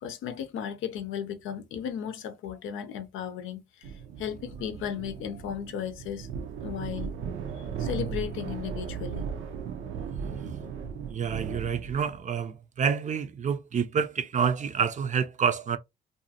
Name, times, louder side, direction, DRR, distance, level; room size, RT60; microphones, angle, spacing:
voice 1, 0.0-3.9 4.2-6.3 6.6-7.2 7.6-9.3, left 9 dB, 85° left, 0.6 m, -35 dB
sound 1, 3.8-12.2, right 6 dB, 80° right, 0.6 m, -36 dB
voice 2, 11.1-15.8, right 7 dB, 40° right, 0.5 m, -28 dB
2.6 x 2.4 x 2.7 m
cardioid pair, 90°, 20 cm